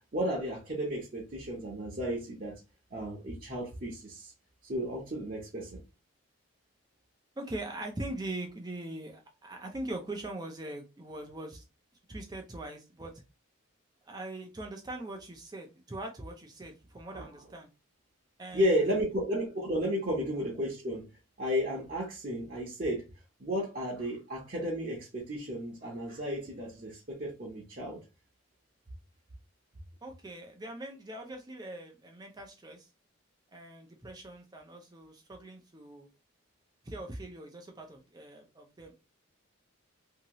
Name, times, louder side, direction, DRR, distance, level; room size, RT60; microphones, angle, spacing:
voice 1, 0.1-2.6 2.9-4.3 4.6-5.8 17.1-17.3 18.5-21.1 21.4-23.1 23.4-28.0, equal, 40° right, 0.8 m, -33 dB
voice 2, 7.4-11.6 12.1-13.2 14.0-17.7 18.4-18.7 30.0-32.9 33.5-36.1 36.8-39.0, right 1 dB, 20° right, 0.5 m, -42 dB
2.8 x 2.7 x 2.9 m
head